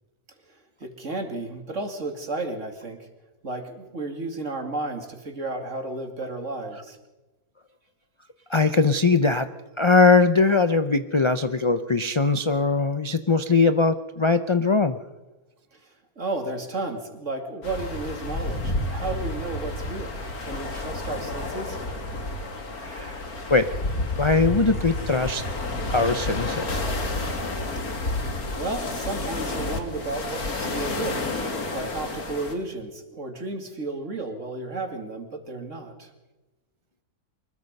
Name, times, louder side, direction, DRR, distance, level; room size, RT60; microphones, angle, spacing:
voice 1, 0.5-3.1 3.4-7.0 15.7-21.8 28.5-31.2 31.7-36.1, right 2 dB, 55° right, 5 dB, 2.9 m, -33 dB
voice 2, 8.5-9.5 9.8-15.0 22.8-23.2 23.5-23.8 24.2-25.4 25.9-26.9, left 3 dB, 35° left, 10 dB, 0.4 m, -21 dB
sound 1, 17.6-32.5, left 2 dB, 80° left, 3.0 m, -30 dB
24.5 x 21.0 x 5.4 m, 1.1 s
omnidirectional pair, 1.6 m